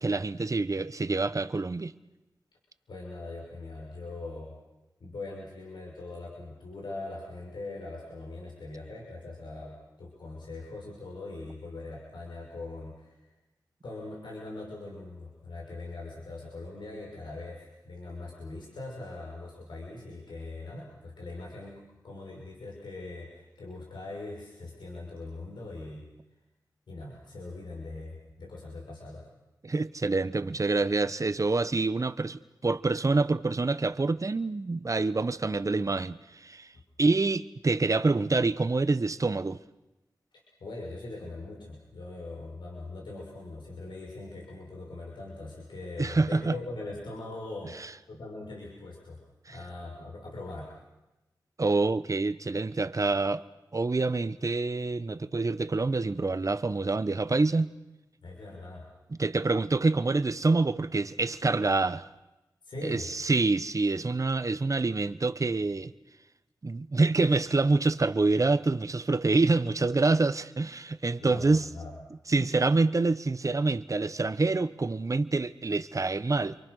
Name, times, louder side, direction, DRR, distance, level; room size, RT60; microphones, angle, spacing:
voice 1, 0.0-1.9 29.6-36.7 37.0-39.6 46.0-46.5 49.5-49.6 51.6-53.4 53.7-57.7 59.2-62.1 62.8-65.9 66.6-71.6 72.3-76.6, right 3 dB, 45° right, 1.1 m, -26 dB
voice 2, 2.9-4.6 5.0-13.2 13.8-26.1 26.9-29.2 36.7-36.8 40.6-49.2 49.5-50.7 58.2-58.9 62.6-63.1 71.2-71.9 72.4-72.5, left 2 dB, 90° left, 6.2 m, -41 dB
30.0 x 24.0 x 6.5 m
cardioid pair, 45°, 8 cm